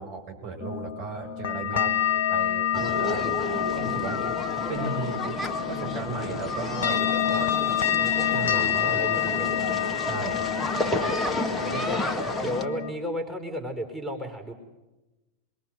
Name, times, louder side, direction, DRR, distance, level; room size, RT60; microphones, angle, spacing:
voice 1, 0.0-4.3 4.7-7.0 8.2-9.0 9.6-10.9, right 4 dB, 55° right, 2 dB, 7.9 m, -36 dB
sound 1, 0.6-12.9, left 10 dB, 65° left, 1.1 m, -28 dB
sound 2, 2.7-12.7, left 1 dB, 10° left, 2.2 m, -31 dB
voice 2, 8.8-9.8 10.9-14.5, equal, 5° right, 5 dB, 4.8 m, -34 dB
27.5 x 22.0 x 7.9 m, 1.1 s
figure-of-eight pair, 90°, 0 cm